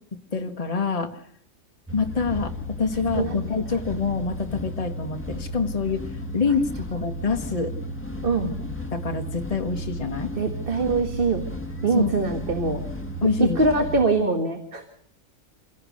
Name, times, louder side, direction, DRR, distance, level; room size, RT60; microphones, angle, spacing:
voice 1, 0.3-1.2 1.9-2.5 2.8-6.0 6.3-7.7 8.4-8.5 8.9-10.3 11.9-12.2 13.2-13.8, left 4 dB, 30° left, 5 dB, 1.5 m, -26 dB
sound 1, 1.9-14.0, equal, 10° left, 1.8 m, -34 dB
voice 2, 3.1-3.6 8.2-8.5 10.4-11.4 11.8-12.8 13.6-14.9, right 3 dB, 45° right, 5 dB, 1.9 m, -23 dB
26.5 x 17.0 x 6.5 m, 0.63 s
omnidirectional pair, 1.3 m